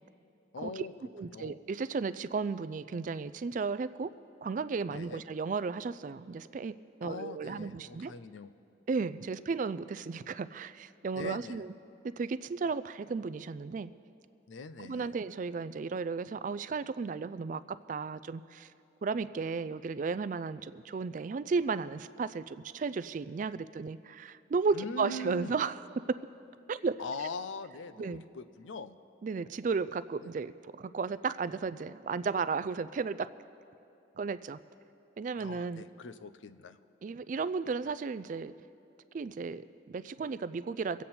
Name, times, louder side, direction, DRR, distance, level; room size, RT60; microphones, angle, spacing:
voice 1, 0.5-0.9 1.2-1.6 4.9-5.2 7.0-8.5 11.2-11.6 14.5-15.1 24.7-25.5 27.0-29.0 30.2-30.3 35.4-36.8, left 3 dB, 90° left, 12 dB, 0.5 m, -41 dB
voice 2, 1.1-4.1 4.4-6.7 7.0-8.1 8.9-11.7 12.0-13.9 14.8-18.7 19.0-25.8 26.7-27.3 28.0-28.2 29.2-33.3 34.2-34.6 35.2-35.8 37.0-38.5 39.1-41.0, right 4 dB, 40° right, 15 dB, 0.3 m, -34 dB
24.5 x 8.3 x 4.3 m, 2.7 s
head